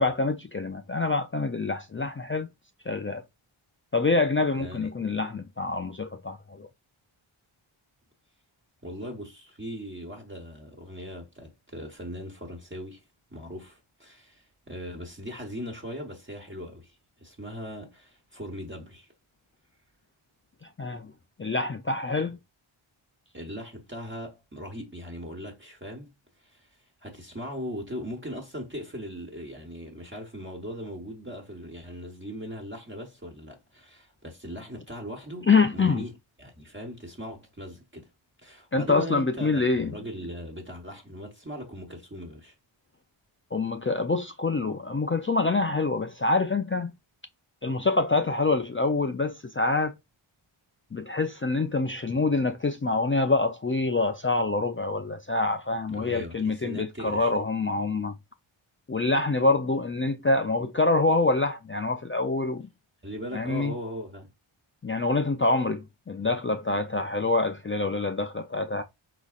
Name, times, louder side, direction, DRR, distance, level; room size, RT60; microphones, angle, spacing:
voice 1, 0.0-2.5 2.9-3.2 3.9-6.7 20.8-21.1 21.4-22.4 35.5-36.0 38.7-39.9 43.5-46.9 47.6-49.9 50.9-58.1 58.9-62.7 63.3-63.7 64.8-68.8, left 3 dB, 25° left, 0.4 m, -26 dB
voice 2, 4.6-4.9 8.8-13.0 13.3-16.9 17.2-19.1 23.3-26.1 26.5-26.6 27.0-36.1 36.4-38.1 38.4-42.5 55.9-57.3 63.0-64.3, equal, 25° right, 1.3 m, -39 dB
4.8 x 4.0 x 2.4 m
wide cardioid pair, 95°, 50 cm